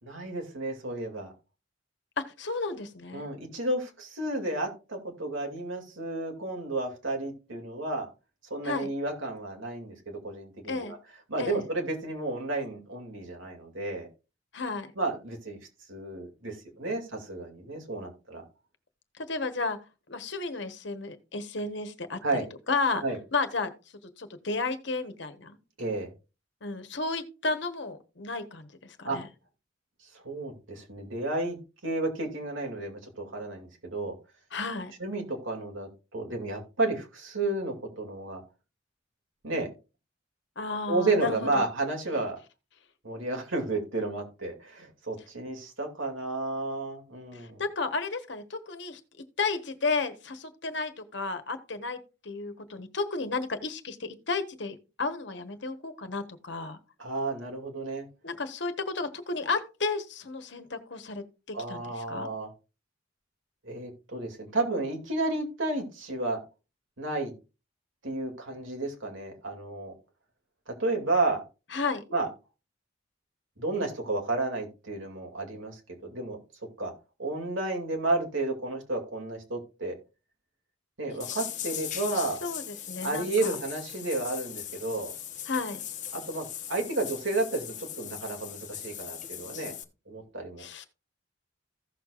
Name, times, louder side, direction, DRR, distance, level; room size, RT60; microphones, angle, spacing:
voice 1, 0.0-1.3 3.1-8.1 8.5-11.0 11.3-14.1 15.0-15.6 15.9-18.4 22.2-22.5 23.0-23.2 25.8-26.1 29.0-29.2 30.2-31.6 31.8-34.2 35.0-38.4 39.4-39.7 40.9-42.4 43.0-47.6 57.0-58.1 61.5-62.5 63.6-66.4 67.0-67.3 68.0-69.9 70.7-71.4 72.1-72.3 73.6-76.4 76.8-76.9 77.2-80.0 81.0-82.4 83.0-85.1 86.1-89.7 90.1-90.7, right 2 dB, 90° right, 2.6 m, -32 dB
voice 2, 2.2-3.3 8.6-8.9 10.7-10.9 11.4-11.6 14.5-14.9 19.2-19.8 20.1-22.2 22.7-23.0 23.3-23.7 24.2-25.6 26.6-29.3 34.5-34.9 40.6-41.7 47.3-49.0 49.4-56.8 58.2-62.3 71.7-72.0 82.4-83.6 85.5-85.8 90.6-90.9, left 3 dB, 65° left, 1.2 m, -33 dB
sound 1, 81.2-89.8, left 10 dB, 40° left, 1.0 m, -39 dB
15.5 x 6.6 x 2.4 m
head